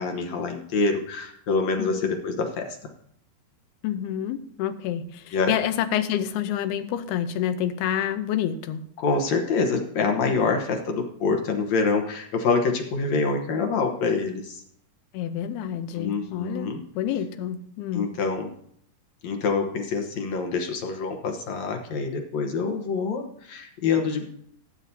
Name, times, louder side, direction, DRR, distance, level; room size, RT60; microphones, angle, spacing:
voice 1, 0.0-2.8 5.3-5.5 9.0-14.6 15.9-16.8 17.9-18.5 19.2-24.2, left 4 dB, 65° left, 3 dB, 1.8 m, -26 dB
voice 2, 1.8-2.1 3.8-8.8 15.1-18.1, left 10 dB, 80° left, 9 dB, 2.7 m, -28 dB
19.0 x 9.0 x 2.8 m, 0.68 s
omnidirectional pair, 4.6 m